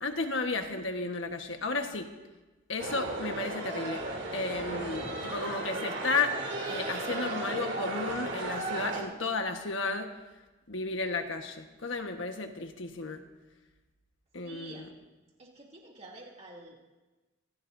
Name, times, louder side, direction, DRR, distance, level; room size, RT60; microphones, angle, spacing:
voice 1, 0.0-2.1 2.7-4.0 4.3-6.3 6.7-10.1 10.7-13.2 14.3-14.9, left 3 dB, 65° left, 5 dB, 1.4 m, -33 dB
sound 1, 2.8-9.0, right 2 dB, 65° right, 3.0 m, -35 dB
voice 2, 14.4-14.9 15.4-16.8, right 2 dB, 30° right, -2 dB, 2.9 m, -49 dB
26.0 x 16.5 x 2.7 m, 1.2 s
head